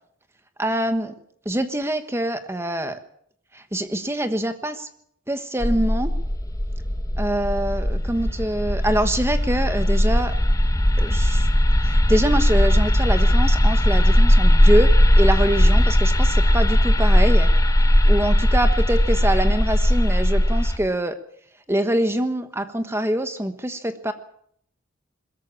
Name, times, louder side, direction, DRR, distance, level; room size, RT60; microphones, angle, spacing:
voice 1, 0.6-1.1 1.4-3.0 3.5-4.9 5.3-6.1 7.2-10.3 11.0-11.5 11.8-17.5 18.1-21.2 21.7-24.1, right 1 dB, 15° right, 9 dB, 1.2 m, -24 dB
sound 1, 5.6-20.8, equal, 15° left, 1.0 m, -18 dB
21.5 x 14.5 x 8.5 m, 0.68 s
head